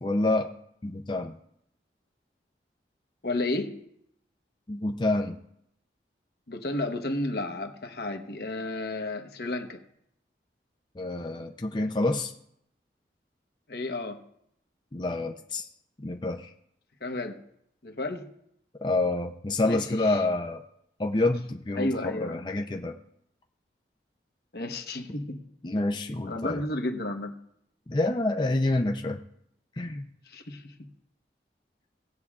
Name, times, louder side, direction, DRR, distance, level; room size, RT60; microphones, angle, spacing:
voice 1, 0.0-0.5 0.8-1.3 4.7-5.4 11.0-12.3 14.9-15.7 16.0-16.5 18.8-20.6 21.0-23.0 25.6-26.6 27.9-29.2 29.8-30.1, left 2 dB, 25° left, 3 dB, 0.5 m, -27 dB
voice 2, 3.2-3.8 6.5-9.8 13.7-14.2 17.0-17.4 17.8-18.3 19.7-20.2 21.7-22.4 24.5-25.4 26.3-27.3 30.3-30.7, left 2 dB, 60° left, 4 dB, 1.0 m, -32 dB
18.5 x 8.4 x 2.4 m, 0.74 s
head